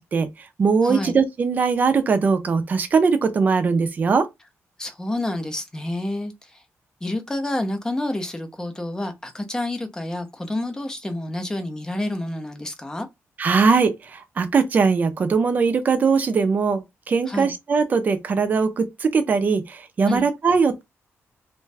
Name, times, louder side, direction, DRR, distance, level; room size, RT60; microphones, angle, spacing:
voice 1, 0.0-4.3 13.4-20.8, right 5 dB, 35° right, 0.5 m, -20 dB
voice 2, 0.8-1.1 4.8-6.6 7.0-13.1 17.3-17.5 20.0-20.3, left 1 dB, 10° left, 0.6 m, -28 dB
2.5 x 2.2 x 3.2 m
wide cardioid pair, 165°, 5 cm